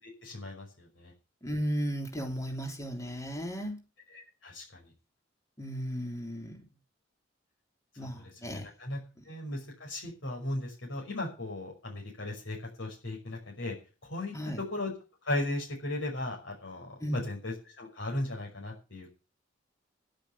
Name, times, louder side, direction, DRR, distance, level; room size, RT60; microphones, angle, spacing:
voice 1, 0.0-1.1 4.1-4.9 8.0-9.0 9.3-13.8 14.0-14.9 15.2-19.1, left 1 dB, 75° left, -1 dB, 5.8 m, -37 dB
voice 2, 1.4-3.8 5.6-6.6 8.0-8.6 9.2-9.3 14.3-14.6 17.0-17.3, equal, 15° left, 2 dB, 3.2 m, -35 dB
11.5 x 10.5 x 7.2 m, 0.33 s
head